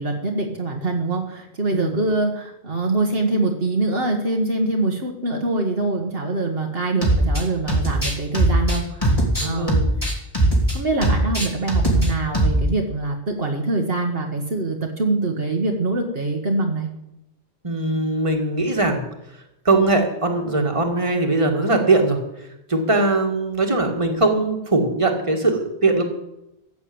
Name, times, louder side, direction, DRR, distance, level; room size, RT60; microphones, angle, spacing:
voice 1, 0.0-9.1 9.4-9.8 10.7-16.9, right 2 dB, 60° right, 2 dB, 1.7 m, -24 dB
sound 1, 7.0-7.4 7.7-10.8 11.0-12.1 12.3-12.6, right 1 dB, 30° left, 3.1 m, -19 dB
voice 2, 9.4-9.9 17.6-19.0 19.7-22.2 22.7-26.0, right 2 dB, 30° right, 3 dB, 2.0 m, -20 dB
14.5 x 7.1 x 8.7 m, 0.86 s
omnidirectional pair, 1.1 m